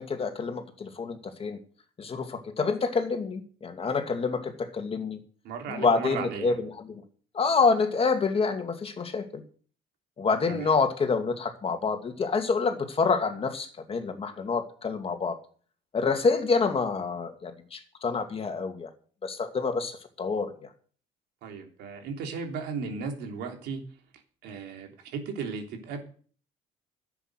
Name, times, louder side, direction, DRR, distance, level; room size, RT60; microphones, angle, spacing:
voice 1, 0.0-1.6 2.0-5.2 5.7-7.0 7.3-9.4 10.2-15.4 15.9-18.9 19.2-20.5, left 4 dB, 35° left, 7 dB, 2.3 m, -27 dB
voice 2, 5.4-6.5 10.5-10.8 21.4-23.8 24.4-26.0, right 5 dB, 85° right, 4 dB, 3.3 m, -36 dB
11.0 x 8.2 x 8.0 m, 0.43 s
cardioid pair, 110°, 17 cm